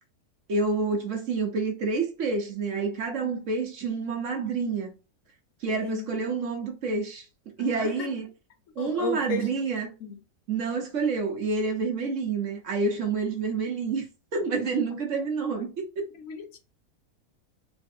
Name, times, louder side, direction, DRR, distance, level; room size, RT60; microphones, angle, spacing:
voice 1, 0.5-4.9 5.6-7.2 7.6-8.2 8.8-9.9 10.5-14.0 14.3-16.1, right 4 dB, 60° right, 1.1 m, -28 dB
voice 2, 5.7-6.1 7.6-8.2 8.7-9.5 10.0-10.2 15.1-15.3 16.1-16.6, left 4 dB, 65° left, 1.0 m, -35 dB
3.4 x 3.1 x 2.6 m
omnidirectional pair, 1.6 m